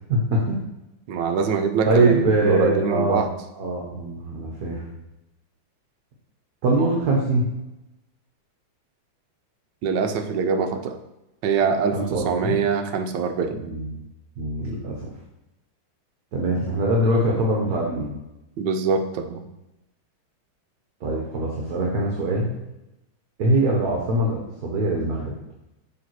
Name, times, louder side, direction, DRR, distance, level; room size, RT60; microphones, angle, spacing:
voice 1, 0.1-0.6 1.9-3.3 3.5-4.8 6.6-7.5 11.9-12.6 13.5-14.0 14.4-15.1 16.3-18.1 21.0-22.5 23.4-25.3, right 1 dB, 55° right, -2 dB, 1.3 m, -23 dB
voice 2, 1.1-3.3 9.8-11.0 11.4-13.6 18.6-19.4, right 5 dB, 70° right, 6 dB, 1.1 m, -23 dB
6.8 x 3.3 x 4.5 m, 0.95 s
omnidirectional pair, 2.2 m